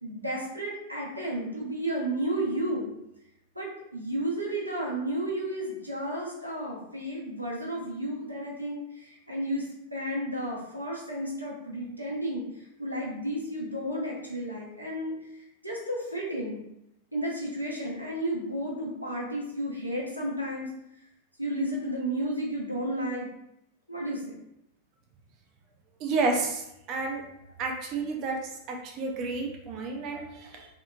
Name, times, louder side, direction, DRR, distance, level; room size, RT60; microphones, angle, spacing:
voice 1, 0.0-2.9 3.5-16.6 17.1-20.7 21.4-23.3 23.9-24.4, right 1 dB, 85° right, -3 dB, 0.6 m, -32 dB
voice 2, 26.0-26.6 26.9-27.2 27.6-28.4 28.7-30.7, right 3 dB, 40° right, 1 dB, 0.5 m, -30 dB
2.8 x 2.4 x 2.2 m, 0.81 s
figure-of-eight pair, 90°, 0 cm